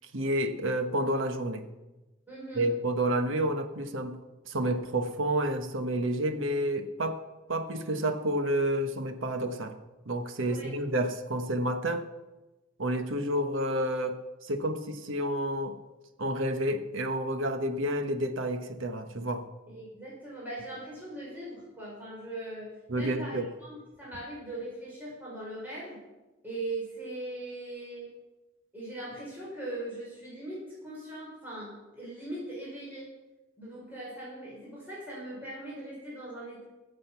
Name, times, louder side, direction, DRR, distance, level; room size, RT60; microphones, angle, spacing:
voice 1, 0.1-1.6 2.6-4.2 4.5-7.2 7.5-9.7 10.1-12.0 12.8-15.8 16.2-19.5 22.9-23.4, right 1 dB, 75° right, 8 dB, 1.3 m, -30 dB
voice 2, 2.3-2.7 10.4-10.7 19.7-26.0 26.4-28.1 28.7-33.1 33.6-36.6, right 1 dB, 10° right, -7 dB, 4.8 m, -40 dB
20.5 x 7.6 x 5.9 m, 1.1 s
head